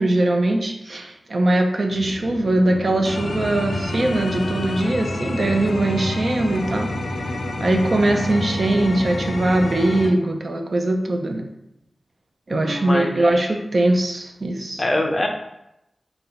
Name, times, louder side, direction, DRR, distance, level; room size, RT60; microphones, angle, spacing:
voice 1, 0.0-6.9 7.6-11.4 12.5-14.8, right 1 dB, 50° right, 4 dB, 0.5 m, -21 dB
sound 1, 1.9-10.1, left 1 dB, 90° left, 0.4 m, -28 dB
voice 2, 12.6-13.5 14.8-15.3, left 1 dB, 25° left, 3 dB, 0.5 m, -24 dB
4.0 x 2.3 x 3.9 m, 0.85 s
wide cardioid pair, 125°, 0 cm